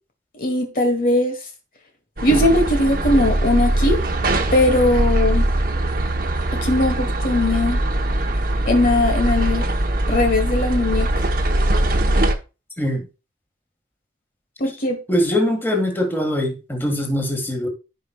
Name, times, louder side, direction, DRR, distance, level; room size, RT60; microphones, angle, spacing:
voice 1, 0.3-1.4 2.2-4.0 4.5-5.5 6.5-7.8 8.7-9.7 10.1-11.1 14.6-15.0, left 2 dB, 50° left, 4 dB, 1.3 m, -19 dB
sound 1, 2.2-12.4, right 1 dB, 55° right, 1.0 m, -21 dB
voice 2, 12.8-13.1 15.1-17.7, left 1 dB, 10° left, 2 dB, 1.8 m, -22 dB
15.0 x 5.2 x 2.4 m, 0.29 s
head